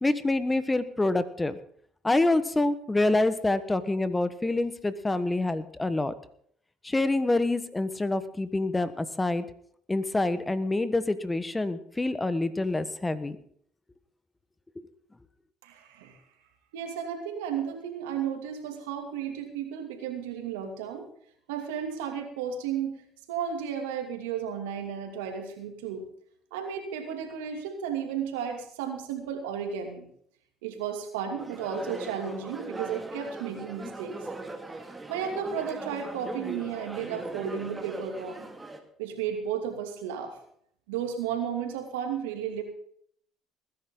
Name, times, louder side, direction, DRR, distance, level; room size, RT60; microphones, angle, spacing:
voice 1, 0.0-1.6 2.0-6.1 6.8-9.4 9.9-13.4, left 2 dB, 15° left, 14 dB, 1.2 m, -26 dB
voice 2, 15.6-16.2 16.7-21.1 21.5-23.0 23.3-26.0 26.5-30.1 30.6-34.2 35.1-38.5 39.0-40.4 40.9-42.6, right 8 dB, 90° right, 5 dB, 2.6 m, -33 dB
sound 1, 31.4-38.8, right 2 dB, 15° right, 2.4 m, -40 dB
20.0 x 10.5 x 3.9 m, 0.64 s
supercardioid pair, 75°, 0 cm